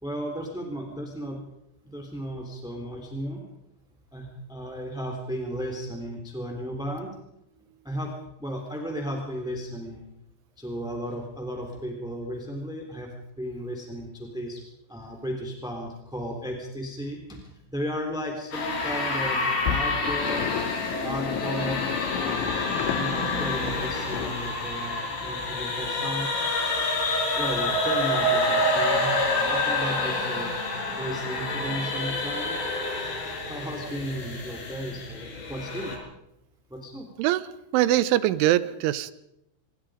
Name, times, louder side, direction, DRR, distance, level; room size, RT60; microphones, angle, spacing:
voice 1, 0.0-1.4 1.8-3.4 4.1-7.1 7.8-8.1 8.4-10.1 10.6-14.6 14.9-20.4 21.0-21.8 22.1-26.3 27.3-29.2 29.5-30.6 31.0-32.6 33.5-36.0 36.7-37.1, equal, ahead, 1 dB, 2.5 m, -34 dB
sound 1, 18.5-36.0, left 2 dB, 55° left, 6.5 m, -28 dB
sound 2, 19.7-24.4, left 9 dB, 75° left, 3.7 m, -32 dB
voice 2, 37.7-39.1, right 14 dB, 85° right, 16 dB, 3.3 m, -22 dB
26.5 x 22.0 x 5.1 m, 0.83 s
omnidirectional pair, 5.5 m